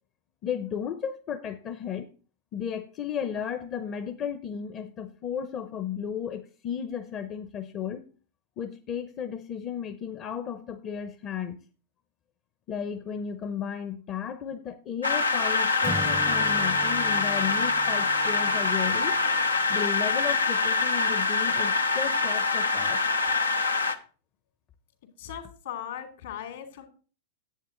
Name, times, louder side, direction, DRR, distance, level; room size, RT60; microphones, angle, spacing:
voice 1, 0.4-2.1 2.5-8.0 8.6-11.6 12.7-19.2 19.7-23.0, left 8 dB, 35° left, 0.8 m, -34 dB
sound 1, 15.0-23.9, left 4 dB, 90° left, 0.8 m, -25 dB
Acoustic guitar / Strum, 15.8-19.7, right 1 dB, 5° right, 0.6 m, -39 dB
voice 2, 25.2-26.9, left 10 dB, 65° left, 2.7 m, -38 dB
10.5 x 8.2 x 3.9 m
figure-of-eight pair, 100°, 0 cm